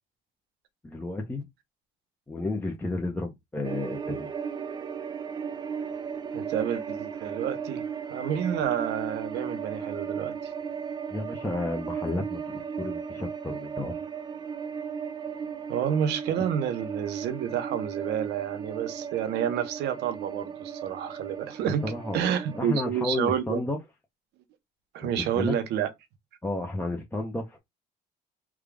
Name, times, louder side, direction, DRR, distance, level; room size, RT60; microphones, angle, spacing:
voice 1, 0.8-1.4 2.3-4.3 11.1-13.9 21.8-23.8 25.0-25.5 26.4-27.6, left 2 dB, 10° left, 0.8 m, -32 dB
sound 1, 3.6-22.6, right 6 dB, 25° right, 0.4 m, -36 dB
voice 2, 6.3-10.5 15.7-21.8 22.1-23.6 24.9-25.9, right 9 dB, 85° right, 0.9 m, -29 dB
3.5 x 2.4 x 3.4 m
cardioid pair, 110°, 17 cm